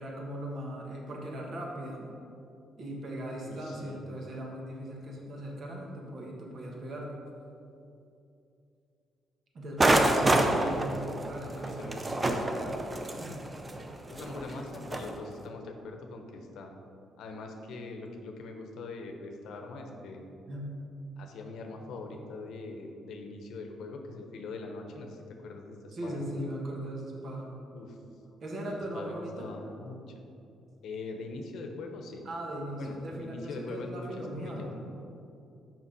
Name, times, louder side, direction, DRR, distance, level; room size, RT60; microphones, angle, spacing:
voice 1, 0.0-2.1 2.8-7.2 9.5-10.8 11.2-12.0 13.2-13.4 20.5-20.7 22.0-22.1 25.9-27.6 28.4-29.5 32.2-34.8, right 1 dB, 55° right, -1 dB, 1.5 m, -38 dB
voice 2, 3.4-4.0 5.7-5.9 10.5-10.9 11.6-12.6 14.1-16.7 17.2-20.3 21.2-26.2 27.8-28.0 28.7-30.2 30.8-32.2 32.8-34.9, left 3 dB, 75° left, 4 dB, 0.8 m, -42 dB
sound 1, 9.8-15.1, right 2 dB, 20° right, 0.6 m, -27 dB
5.9 x 5.2 x 5.4 m, 2.7 s
cardioid pair, 90°, 0 cm